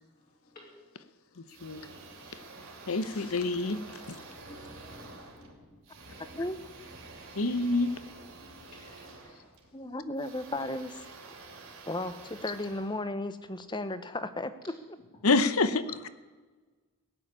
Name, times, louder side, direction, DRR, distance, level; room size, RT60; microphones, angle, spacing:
voice 1, 0.3-1.0 1.3-5.8 8.0-9.2, left 2 dB, 40° left, -4 dB, 3.2 m, -57 dB
sound 1, 1.5-13.7, right 3 dB, 65° right, 2.9 m, -49 dB
voice 2, 2.9-3.8 7.4-7.9 15.2-16.1, left 3 dB, 75° left, 13 dB, 0.9 m, -27 dB
voice 3, 9.7-11.1 11.9-14.8, left 2 dB, 20° left, 12 dB, 0.8 m, -35 dB
17.0 x 7.7 x 9.8 m, 1.3 s
head